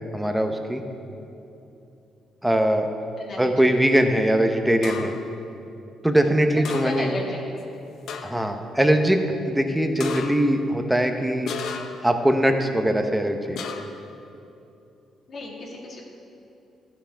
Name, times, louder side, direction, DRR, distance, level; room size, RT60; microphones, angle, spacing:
voice 1, 0.1-0.8 2.4-2.9 3.4-5.1 6.0-7.1 8.2-9.2 9.4-11.5 12.0-13.7, right 1 dB, 5° right, 5 dB, 0.8 m, -21 dB
voice 2, 3.2-3.7 6.5-7.6 15.3-16.1, left 2 dB, 50° left, -1 dB, 1.9 m, -34 dB
sound 1, 4.8-5.3 6.6-7.2 7.6-7.7 8.1-8.5 10.0-10.6 11.5-12.1 13.6-14.1, left 6 dB, 75° left, 0.7 m, -34 dB
13.0 x 5.8 x 5.0 m, 2.8 s
cardioid pair, 90°, 0 cm